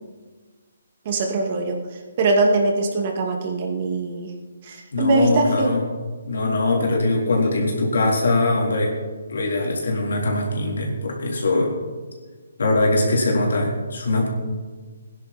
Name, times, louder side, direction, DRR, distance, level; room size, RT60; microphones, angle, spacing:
voice 1, 1.1-1.8 2.2-4.3 4.6-5.8, right 2 dB, 35° right, 2 dB, 2.3 m, -21 dB
voice 2, 4.9-5.8 6.3-8.9 9.3-11.7 12.6-14.3, left 2 dB, 75° left, -2 dB, 3.7 m, -21 dB
17.5 x 10.5 x 4.3 m, 1.4 s
hypercardioid pair, 165°, 0 cm